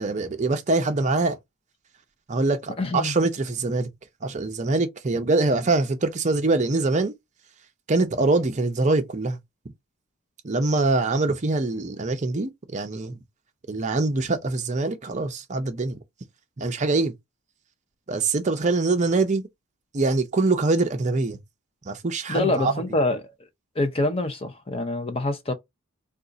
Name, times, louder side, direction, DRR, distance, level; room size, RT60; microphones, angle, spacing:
voice 1, 0.0-1.4 2.3-3.9 4.2-7.1 7.9-9.4 10.4-13.2 13.7-16.0 16.6-17.1 18.1-19.5 19.9-21.4 21.9-22.7, right 3 dB, 35° right, 0.5 m, -24 dB
voice 2, 2.8-3.1 22.3-23.3 23.8-25.5, left 2 dB, 25° left, 0.6 m, -25 dB
2.5 x 2.4 x 3.8 m
head